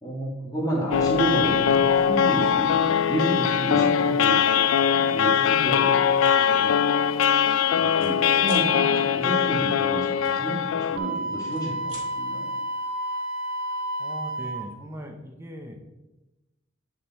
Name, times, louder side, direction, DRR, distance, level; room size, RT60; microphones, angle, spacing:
voice 1, 0.0-6.8 7.6-12.6, right 1 dB, 15° left, -4 dB, 1.7 m, -31 dB
sound 1, 0.9-11.0, left 8 dB, 70° left, 0.3 m, -21 dB
sound 2, 6.1-6.3 6.8-7.0 7.2-8.1 8.4-8.7 10.2-11.0 11.4-12.1, right 2 dB, 30° right, 2.4 m, -46 dB
Wind instrument woodwind instrument, 10.9-14.7, right 1 dB, 45° right, 1.7 m, -31 dB
voice 2, 14.0-15.8, equal, 10° right, 3 dB, 0.7 m, -39 dB
9.4 x 3.8 x 4.2 m, 1.0 s
head